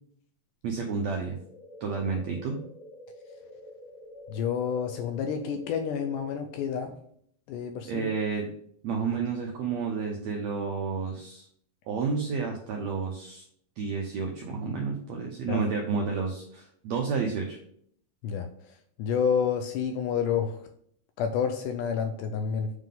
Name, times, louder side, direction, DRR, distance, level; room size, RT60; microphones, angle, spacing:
voice 1, 0.6-1.4 1.8-2.6 7.9-8.5 8.8-11.5 11.9-13.4 13.8-17.6, right 5 dB, 80° right, 1 dB, 1.5 m, -30 dB
sound 1, 1.3-6.4, left 2 dB, 20° right, 1.6 m, -48 dB
voice 2, 4.3-6.9 7.5-8.1 15.5-15.6 18.2-18.5 19.0-20.6 21.2-22.7, left 7 dB, 80° left, 7 dB, 1.9 m, -29 dB
7.3 x 3.7 x 3.8 m, 0.65 s
omnidirectional pair, 4.0 m